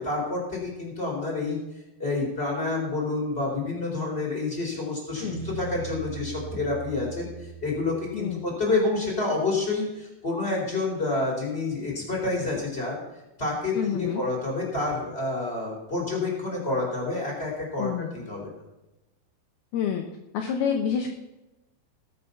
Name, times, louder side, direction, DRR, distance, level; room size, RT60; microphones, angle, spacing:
voice 1, 0.0-1.6 2.0-13.0 13.4-18.5, left 3 dB, 15° left, -2 dB, 3.9 m, -28 dB
Guitar, 5.1-8.4, right 7 dB, 60° right, 4.2 m, -39 dB
voice 2, 8.1-8.4 13.7-14.2 17.8-18.1 19.7-20.0 20.3-21.1, left 8 dB, 75° left, 3 dB, 2.5 m, -28 dB
19.5 x 7.1 x 5.8 m, 1.0 s
omnidirectional pair, 5.4 m